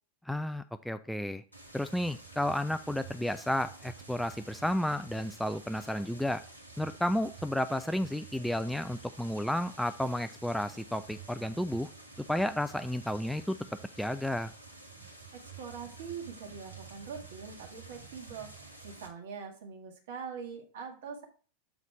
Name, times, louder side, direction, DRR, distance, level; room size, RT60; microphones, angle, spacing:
voice 1, 0.3-1.4 1.7-6.4 6.8-11.9 12.3-13.6 14.0-14.5, left 1 dB, ahead, 10 dB, 0.3 m, -32 dB
sound 1, 1.5-19.1, right 4 dB, 85° right, 1.4 m, -50 dB
voice 2, 15.3-21.3, right 6 dB, 55° right, 3 dB, 1.7 m, -43 dB
7.1 x 4.0 x 4.6 m, 0.39 s
figure-of-eight pair, 90°, 0 cm